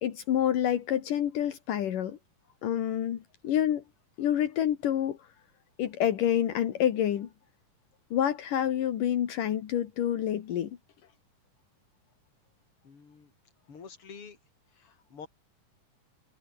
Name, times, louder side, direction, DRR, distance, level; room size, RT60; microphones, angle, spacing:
voice 1, 0.0-2.2 2.6-3.2 3.4-3.8 4.2-5.2 5.8-7.3 8.1-10.7, left 10 dB, 75° left, 3.3 m, -27 dB
voice 2, 12.8-13.3 13.7-14.4 14.7-15.3, left 5 dB, 40° left, 4.4 m, -47 dB
omnidirectional pair, 3.9 m